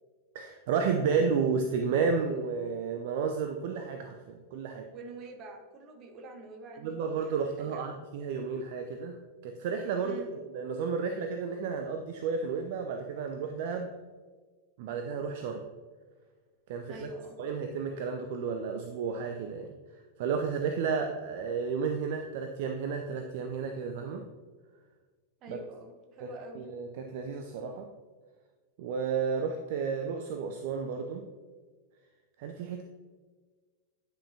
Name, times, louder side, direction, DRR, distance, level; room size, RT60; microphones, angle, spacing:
voice 1, 0.3-4.9 6.8-9.2 9.4-13.9 14.8-15.6 16.7-17.1 17.4-19.7 20.2-24.2 25.5-25.6 26.6-27.9 28.8-31.3 32.4-32.8, right 5 dB, 50° right, 5 dB, 0.5 m, -32 dB
voice 2, 4.9-8.0 10.0-10.3 16.8-17.4 25.4-26.6, right 2 dB, 35° right, 3 dB, 1.2 m, -46 dB
9.9 x 5.6 x 2.8 m, 1.4 s
figure-of-eight pair, 90°, 0 cm